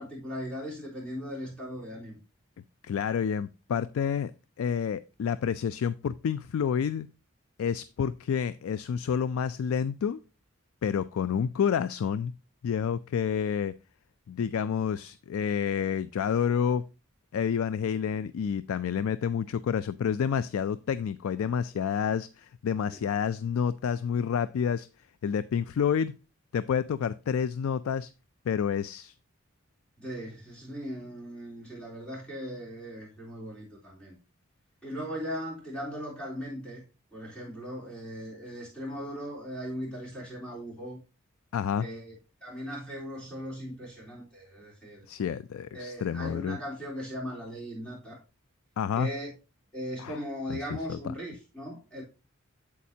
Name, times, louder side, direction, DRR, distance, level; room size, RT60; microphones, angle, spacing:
voice 1, 0.0-2.2 22.9-23.0 30.0-34.2 34.8-36.8 37.1-41.0 41.8-42.2 42.4-45.1 45.7-48.2 49.0-49.3 49.7-52.0, equal, 5° left, 3.5 m, -38 dB
voice 2, 2.8-4.3 4.6-7.1 7.6-10.2 10.8-12.3 12.6-13.7 14.3-16.9 17.3-24.9 25.2-26.1 26.5-28.1 28.5-29.1 41.5-41.9 45.1-46.6 48.8-49.1 50.0-50.2 50.5-51.0, left 7 dB, 85° left, 0.3 m, -29 dB
8.4 x 7.4 x 2.7 m
head